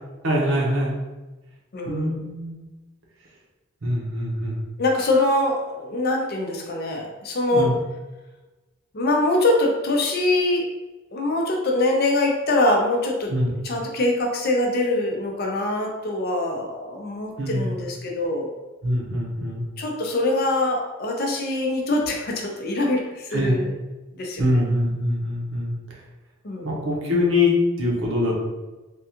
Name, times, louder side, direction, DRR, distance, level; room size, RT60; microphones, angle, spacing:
voice 1, 0.2-1.0 1.8-2.7 3.8-4.6 7.5-7.8 13.3-13.5 17.4-17.7 18.8-19.6 23.3-23.6 24.4-25.7 26.6-28.4, left 1 dB, 80° right, -3 dB, 0.9 m, -23 dB
voice 2, 1.7-2.2 4.8-7.7 8.9-10.7 11.1-13.3 13.6-18.5 19.8-23.7 24.1-24.6 26.4-26.8, left 2 dB, 50° left, 1 dB, 0.6 m, -23 dB
3.5 x 2.3 x 2.8 m, 1.1 s
head